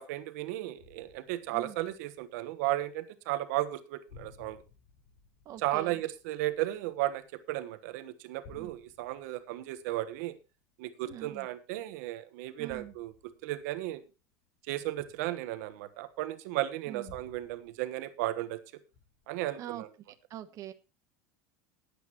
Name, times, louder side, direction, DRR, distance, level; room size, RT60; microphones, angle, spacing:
voice 1, 0.0-4.6 5.6-7.2 7.5-10.3 10.8-13.1 13.4-14.0 14.7-18.6 19.3-19.9, right 15 dB, 65° right, 12 dB, 1.2 m, -34 dB
sound 1, 0.8-3.0 3.3-3.8 4.1-7.8 8.2-11.8 12.7-16.2 17.1-18.6 18.9-19.4, left 5 dB, 65° left, 4.7 m, -58 dB
voice 2, 5.4-6.0 8.5-8.7 11.0-11.5 12.6-12.9 16.9-17.1 19.6-19.8 20.3-20.7, right 12 dB, 40° right, 8 dB, 1.1 m, -43 dB
19.5 x 8.4 x 3.0 m, 0.29 s
supercardioid pair, 135°, 9 cm